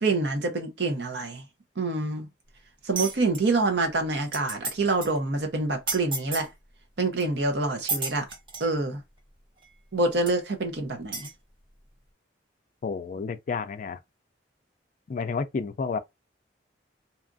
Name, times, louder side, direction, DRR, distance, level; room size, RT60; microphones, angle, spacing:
voice 1, 0.0-1.4 1.8-2.3 2.8-6.5 7.0-8.3 8.6-9.0 9.9-11.3, right 3 dB, 65° right, 0.7 m, -26 dB
sound 1, 3.0-3.4 3.9-4.0 4.2-4.7 5.0-5.2 5.9-6.5 7.2-7.3 7.9-8.7 9.6-9.7 10.3-10.4 11.1-11.3, right 3 dB, 30° right, 0.6 m, -32 dB
voice 2, 12.8-14.0 15.1-16.0, left 5 dB, 45° left, 0.3 m, -30 dB
2.8 x 2.4 x 2.5 m
head